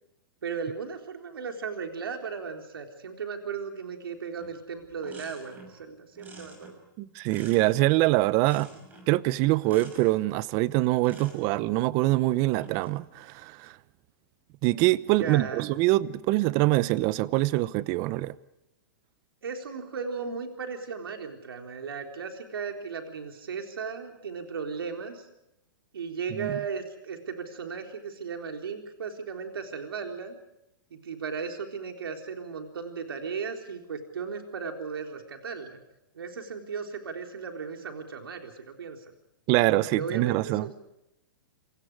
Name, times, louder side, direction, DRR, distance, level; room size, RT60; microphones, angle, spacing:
voice 1, 0.4-6.8 8.7-8.8 15.0-15.6 19.4-25.3 25.9-30.4 30.9-35.8 36.1-39.0 39.7-40.7, right 5 dB, 90° right, 3.9 m, -36 dB
sound 1, 4.4-4.6 4.8-5.8 6.2-8.0 8.4-9.2 9.6-10.2 11.0-11.7 12.4-13.0, right 2 dB, 15° right, 5.8 m, -49 dB
voice 2, 7.0-8.7 9.1-13.8 14.6-18.3 26.4-26.6 39.5-40.7, right 18 dB, 30° right, 0.8 m, -24 dB
27.5 x 26.5 x 4.9 m
hypercardioid pair, 155°, 12 cm